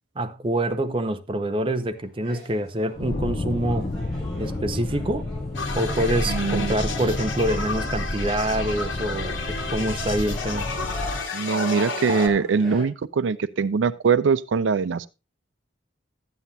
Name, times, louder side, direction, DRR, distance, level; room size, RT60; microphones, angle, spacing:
voice 1, 0.2-3.9 4.4-5.3 5.8-10.7, right 1 dB, 25° right, 0.6 m, -26 dB
sound 1, 1.9-12.8, equal, 5° left, 6.9 m, -39 dB
sound 2, 2.9-11.2, left 1 dB, 35° left, 0.6 m, -30 dB
sound 3, 5.5-12.3, left 4 dB, 75° left, 1.9 m, -32 dB
voice 2, 6.3-6.7 11.3-15.1, right 5 dB, 75° right, 0.4 m, -22 dB
13.0 x 9.3 x 2.7 m
head